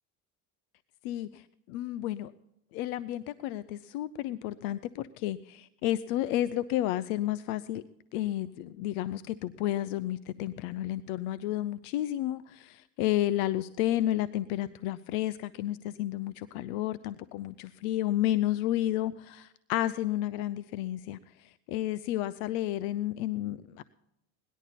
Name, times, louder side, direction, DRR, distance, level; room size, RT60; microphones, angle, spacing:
voice 1, 1.0-2.3 2.7-7.8 8.1-23.8, left 13 dB, 85° left, 16 dB, 0.7 m, -31 dB
19.0 x 11.5 x 4.1 m, 0.87 s
supercardioid pair, 115°, 43 cm